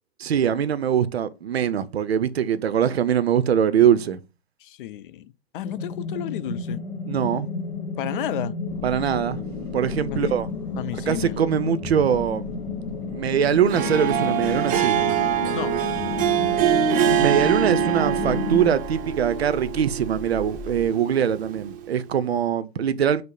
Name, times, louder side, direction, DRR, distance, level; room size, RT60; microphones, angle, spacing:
voice 1, 0.2-4.2 7.1-7.5 8.8-9.4 9.7-10.5 11.1-12.6 13.1-15.0 17.2-23.2, right 8 dB, 85° right, 0.5 m, -22 dB
voice 2, 4.6-6.8 8.0-8.5 10.1-10.3 10.8-11.4 15.5-15.7, left 12 dB, 55° left, 0.5 m, -32 dB
sound 1, 5.6-18.7, left 5 dB, 85° left, 0.8 m, -31 dB
sound 2, 8.6-20.9, left 2 dB, 5° left, 1.7 m, -41 dB
Harp, 13.6-21.9, right 10 dB, 25° right, 0.6 m, -25 dB
5.3 x 2.0 x 3.8 m
hypercardioid pair, 105°, 31 cm